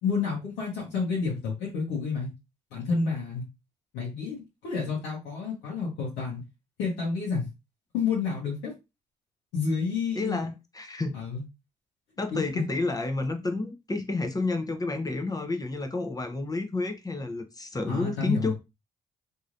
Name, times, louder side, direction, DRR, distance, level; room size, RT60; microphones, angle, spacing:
voice 1, 0.0-2.3 2.7-3.4 3.9-6.4 6.8-7.5 7.9-8.7 9.5-10.4 11.1-11.4 12.3-12.4 17.9-18.5, left 5 dB, 85° left, 0.9 m, -29 dB
voice 2, 10.2-11.2 12.2-18.5, left 2 dB, 20° left, 0.7 m, -30 dB
3.0 x 2.7 x 2.5 m
hypercardioid pair, 50°, 17 cm